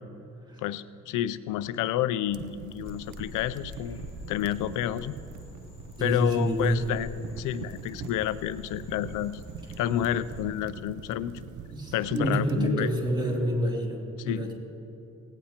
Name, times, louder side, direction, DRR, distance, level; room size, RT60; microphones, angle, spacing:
voice 1, 0.6-4.0 4.3-5.2 6.0-7.1 7.4-9.4 9.8-11.3 11.9-12.9 14.2-14.5, left 12 dB, 90° left, 15 dB, 0.5 m, -29 dB
sound 1, 2.3-12.7, right 7 dB, 75° right, 0.8 m, -43 dB
Frog, 2.8-10.4, left 3 dB, 40° left, 2.9 m, -46 dB
voice 2, 6.0-7.0 11.7-14.5, right 1 dB, 15° right, -2 dB, 2.9 m, -28 dB
18.5 x 17.0 x 2.9 m, 2.9 s
cardioid pair, 90°, 30 cm